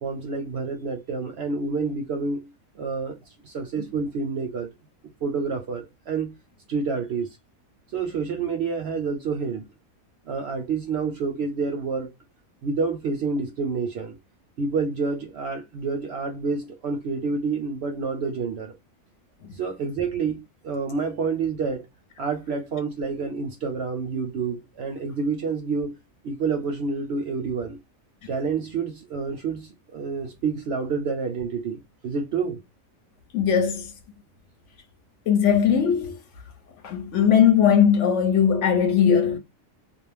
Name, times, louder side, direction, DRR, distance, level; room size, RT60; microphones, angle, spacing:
voice 1, 0.0-2.5 2.8-3.2 3.4-4.7 5.2-6.4 6.7-7.4 7.9-9.7 10.3-12.1 12.6-14.2 14.6-18.7 19.5-21.9 22.2-26.0 26.2-27.8 28.3-32.6, right 4 dB, 65° right, 0.7 m, -28 dB
voice 2, 33.3-33.9 35.3-36.2 36.8-39.4, left 8 dB, 65° left, 0.9 m, -19 dB
2.4 x 2.0 x 3.2 m
omnidirectional pair, 1.5 m